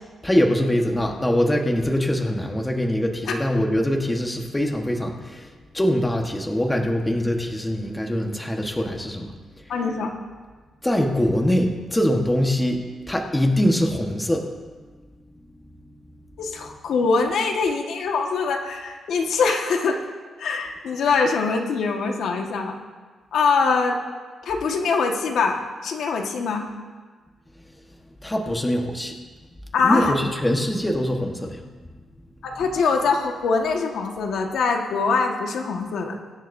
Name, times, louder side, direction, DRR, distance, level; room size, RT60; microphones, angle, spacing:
voice 1, 0.2-9.3 10.8-14.5 28.2-29.1 29.8-31.6, equal, 10° left, 2 dB, 1.3 m, -23 dB
voice 2, 9.7-10.1 16.4-20.0 20.4-22.8 23.3-24.0 24.4-26.7 29.7-30.1 32.4-36.1, left 4 dB, 75° left, 2 dB, 1.6 m, -23 dB
24.0 x 10.5 x 2.7 m, 1.4 s
cardioid pair, 120°, 0 cm